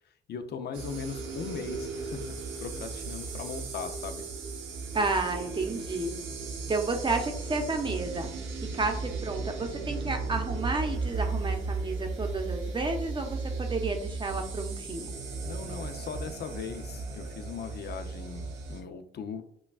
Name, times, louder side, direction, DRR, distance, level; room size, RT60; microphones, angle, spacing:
voice 1, 0.3-2.2 2.6-4.2 15.4-19.4, left 6 dB, 55° left, 7 dB, 0.6 m, -39 dB
sound 1, 0.7-18.8, right 4 dB, 85° right, 0.8 m, -36 dB
voice 2, 4.9-6.1 6.7-8.3 8.7-15.1, right 3 dB, 25° right, 4 dB, 0.8 m, -31 dB
5.8 x 2.3 x 2.3 m, 0.73 s
cardioid pair, 90°, 20 cm